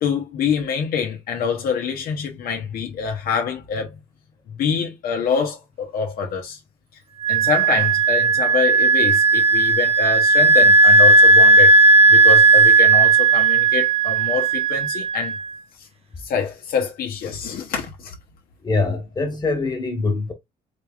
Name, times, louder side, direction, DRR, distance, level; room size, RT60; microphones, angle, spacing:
voice 1, 0.0-3.9 4.5-6.6 7.3-11.7 12.1-15.4 15.8-15.9 16.2-18.1, left 6 dB, 60° left, 0.9 m, -25 dB
Wind instrument woodwind instrument, 7.2-15.5, right 3 dB, 35° right, 0.8 m, -14 dB
voice 2, 18.6-20.3, left 3 dB, 25° left, 1.5 m, -23 dB
4.1 x 3.4 x 2.4 m
cardioid pair, 110°, 17 cm